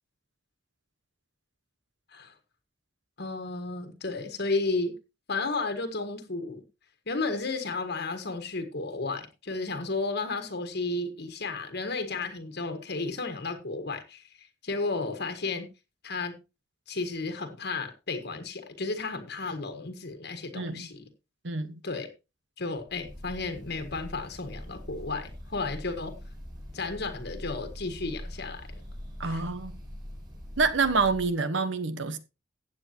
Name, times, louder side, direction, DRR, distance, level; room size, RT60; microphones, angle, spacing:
voice 1, 3.2-4.9 5.3-6.6 7.1-15.7 16.0-16.3 16.9-21.0 21.8-22.1 22.6-26.2 26.7-28.7 29.2-29.4, left 3 dB, 60° left, 1.5 m, -33 dB
voice 2, 20.5-20.9 21.4-21.8 29.2-29.7 30.6-32.2, right 4 dB, 70° right, 1.3 m, -27 dB
Breathing / Bird, 22.9-31.4, equal, 20° right, 5.4 m, -43 dB
15.5 x 8.3 x 2.9 m
head